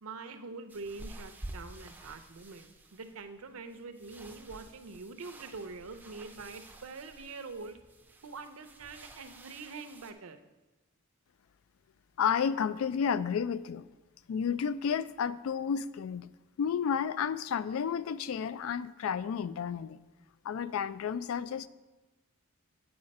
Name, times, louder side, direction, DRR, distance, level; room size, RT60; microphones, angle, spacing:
voice 1, 0.0-7.8 8.2-10.4, right 4 dB, 75° right, 9 dB, 0.6 m, -44 dB
sound 1, 0.7-10.1, right 1 dB, 10° right, 0.5 m, -50 dB
voice 2, 12.2-13.8 14.3-16.3 16.6-20.0 20.4-21.7, left 7 dB, 70° left, 16 dB, 0.3 m, -31 dB
8.6 x 4.8 x 5.3 m, 1.1 s
head